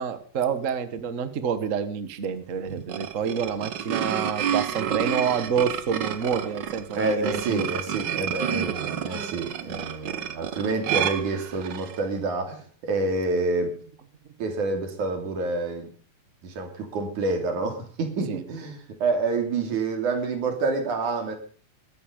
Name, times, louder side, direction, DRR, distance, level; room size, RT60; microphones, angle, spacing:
voice 1, 0.0-7.7 18.3-18.4, right 7 dB, 40° right, 11 dB, 1.2 m, -28 dB
sound 1, 2.7-12.0, right 9 dB, 60° right, 1.1 m, -30 dB
voice 2, 7.0-13.8 14.4-15.9 16.4-21.4, right 3 dB, 90° right, 5 dB, 4.6 m, -28 dB
22.0 x 11.0 x 5.3 m, 0.42 s
omnidirectional pair, 3.4 m